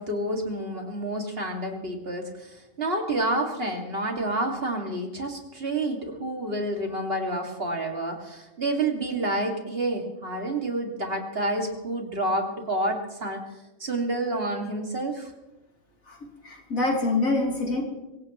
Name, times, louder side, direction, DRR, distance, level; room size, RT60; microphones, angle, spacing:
voice 1, 0.0-13.4 13.8-15.3, right 1 dB, 45° right, 2 dB, 2.4 m, -29 dB
voice 2, 16.4-17.8, left 2 dB, 90° left, -1 dB, 3.4 m, -25 dB
24.0 x 17.0 x 3.0 m, 1.0 s
omnidirectional pair, 1.4 m